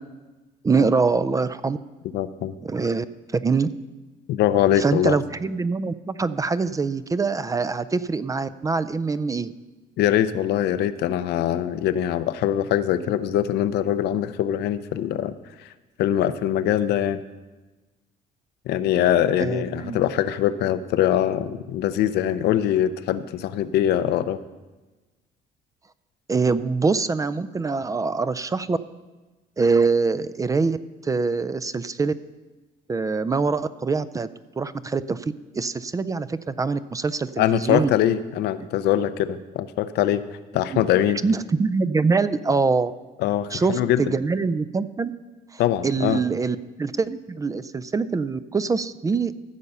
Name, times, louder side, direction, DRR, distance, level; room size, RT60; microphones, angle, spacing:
voice 1, 0.6-1.8 2.6-3.1 3.3-3.7 4.8-9.5 19.4-20.1 26.3-28.8 29.6-30.8 31.0-32.1 32.9-37.9 38.6-38.7 40.7-40.8 41.2-42.9 43.5-45.1 45.5-49.3, right 4 dB, 20° right, 15 dB, 0.4 m, -24 dB
voice 2, 2.0-2.5 4.3-5.2 10.0-15.3 15.6-15.7 16.0-17.2 18.7-24.4 37.4-40.2 40.5-41.2 43.2-44.1 45.6-46.2, left 11 dB, 75° left, 12 dB, 0.6 m, -23 dB
15.0 x 6.8 x 5.5 m, 1.2 s
cardioid pair, 110°, 17 cm